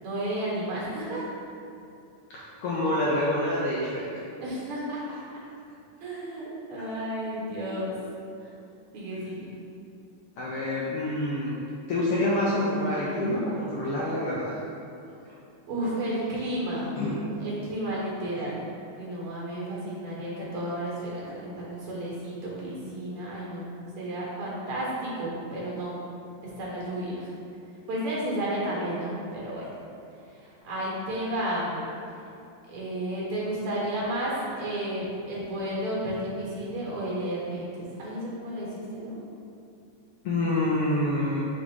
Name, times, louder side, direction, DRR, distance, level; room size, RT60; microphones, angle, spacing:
voice 1, 0.0-1.3 4.1-5.0 6.0-8.0 8.9-9.7 15.7-16.9 17.4-18.7 19.0-23.7 24.0-26.0 26.4-27.3 27.9-29.7 30.4-31.9 32.7-39.2, right 1 dB, 55° right, -6 dB, 2.0 m, -32 dB
voice 2, 2.3-4.1 6.8-6.9 10.4-11.6 11.9-14.5 17.0-17.2 40.2-41.5, left 1 dB, 80° left, -6 dB, 1.3 m, -27 dB
6.6 x 3.9 x 3.7 m, 2.6 s
omnidirectional pair, 3.4 m